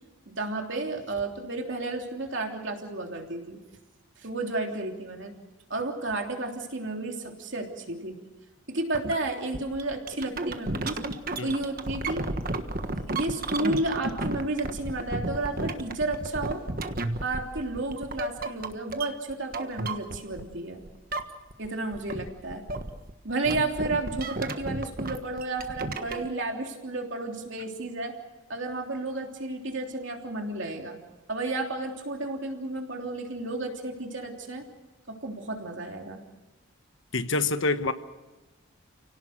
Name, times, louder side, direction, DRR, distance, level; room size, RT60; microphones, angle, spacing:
voice 1, 0.3-3.6 4.2-5.3 5.7-8.2 8.7-11.0 11.4-12.2 13.1-16.6 17.2-20.8 21.6-22.6 23.2-28.1 28.5-31.0 31.3-34.6 35.1-36.2, right 2 dB, 60° right, 2 dB, 3.3 m, -32 dB
sound 1, 8.9-9.1 9.5-20.6 20.8-21.7 21.9-26.3, right 2 dB, 40° right, 1.4 m, -33 dB
voice 2, 37.1-37.9, left 3 dB, 65° left, 10 dB, 1.3 m, -26 dB
30.0 x 18.0 x 6.6 m, 1.1 s
head